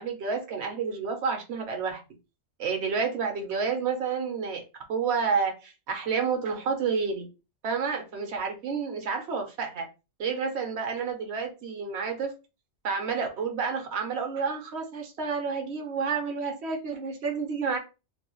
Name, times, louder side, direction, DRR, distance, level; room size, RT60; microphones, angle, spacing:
voice 1, 0.0-2.0 2.6-4.6 4.9-7.3 7.6-9.9 10.2-12.3 12.8-17.8, right 5 dB, 70° right, 4 dB, 1.1 m, -30 dB
3.3 x 2.3 x 3.1 m, 0.29 s
omnidirectional pair, 1.2 m